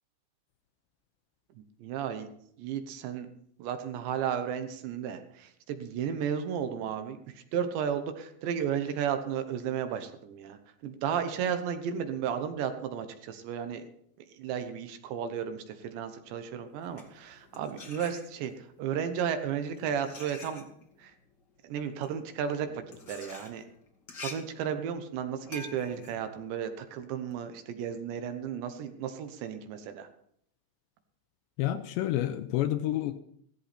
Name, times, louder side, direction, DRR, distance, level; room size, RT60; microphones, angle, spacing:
voice 1, 1.8-2.3 2.6-3.3 3.6-7.2 7.5-13.8 14.2-20.6 21.0-21.1 21.6-22.8 23.1-23.6 24.2-30.1, right 8 dB, 75° right, 8 dB, 3.1 m, -33 dB
sound 1, 16.7-18.7 19.4-27.3, left 3 dB, 50° left, 1.3 m, -47 dB
voice 2, 31.6-33.1, left 13 dB, 80° left, 9 dB, 2.7 m, -29 dB
16.0 x 14.0 x 4.3 m, 0.69 s
omnidirectional pair, 5.5 m